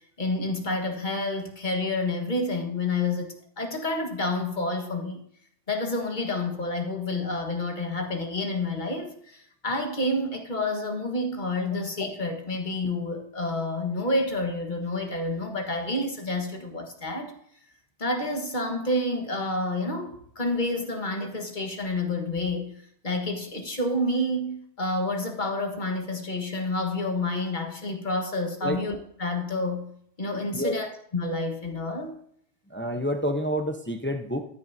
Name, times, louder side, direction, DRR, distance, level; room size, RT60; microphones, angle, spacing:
voice 1, 0.2-5.2 5.7-17.3 18.0-29.9 30.2-32.1, left 2 dB, 45° left, 1.6 m, -29 dB
voice 2, 32.7-34.4, equal, 10° left, 0.7 m, -28 dB
13.5 x 9.2 x 2.8 m
omnidirectional pair, 1.1 m